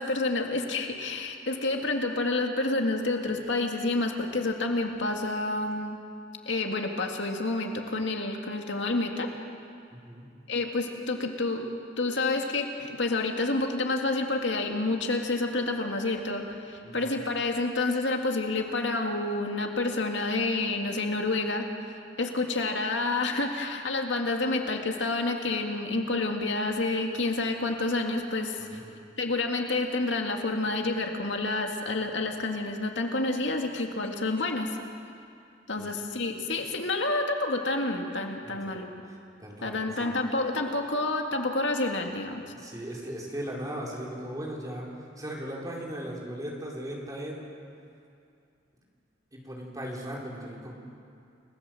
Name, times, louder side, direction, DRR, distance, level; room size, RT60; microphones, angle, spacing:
voice 1, 0.0-6.0 6.5-9.3 10.5-11.7 12.0-21.7 22.2-28.8 29.2-34.7 35.7-38.9 39.6-42.4, left 2 dB, 75° left, 3 dB, 2.2 m, -29 dB
voice 2, 9.9-10.3 16.8-17.2 28.6-28.9 35.8-36.0 38.4-38.8 39.4-40.1 42.5-44.9 45.2-47.4 49.3-50.7, equal, 20° right, -3 dB, 4.7 m, -38 dB
29.5 x 17.5 x 7.8 m, 2.5 s
head